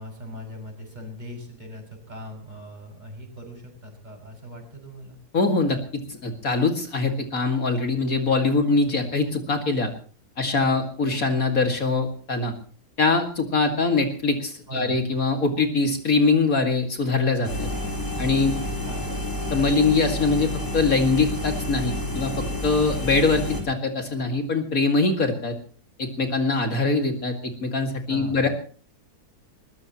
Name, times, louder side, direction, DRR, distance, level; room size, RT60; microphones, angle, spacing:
voice 1, 0.0-5.2 14.7-15.0 18.4-18.5 18.8-19.2 28.1-28.5, left 1 dB, 25° right, 1 dB, 6.6 m, -40 dB
voice 2, 5.3-9.9 10.4-12.5 13.0-17.7 18.2-18.5 19.5-25.5 26.0-28.5, left 3 dB, 60° left, 5 dB, 2.6 m, -23 dB
sound 1, 17.4-23.6, left 1 dB, 10° left, 4.4 m, -29 dB
22.0 x 20.0 x 3.0 m, 0.41 s
omnidirectional pair, 1.7 m